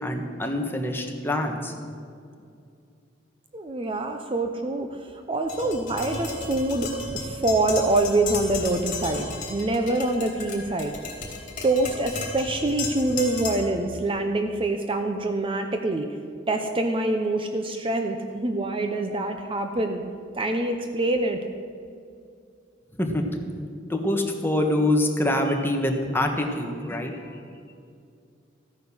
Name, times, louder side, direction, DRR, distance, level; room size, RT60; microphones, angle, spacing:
voice 1, 0.0-1.7 23.0-23.2 23.9-27.4, left 1 dB, 10° left, 2 dB, 1.4 m, -25 dB
voice 2, 3.5-11.0 11.6-16.1 16.5-20.0 20.3-21.4, right 2 dB, 30° right, 5 dB, 0.7 m, -25 dB
Tap, 5.5-13.8, left 3 dB, 45° left, 3.0 m, -34 dB
14.5 x 9.4 x 6.2 m, 2.4 s
head